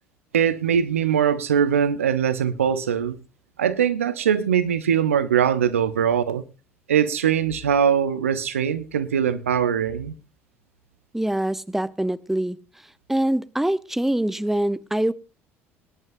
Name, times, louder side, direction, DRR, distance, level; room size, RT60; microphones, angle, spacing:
voice 1, 0.3-3.2 3.6-6.4 6.9-10.1, right 8 dB, 80° right, 1.0 m, -21 dB
voice 2, 11.1-12.6 13.1-15.1, right 1 dB, 5° right, 0.9 m, -24 dB
23.0 x 11.0 x 2.7 m
figure-of-eight pair, 60°, 7 cm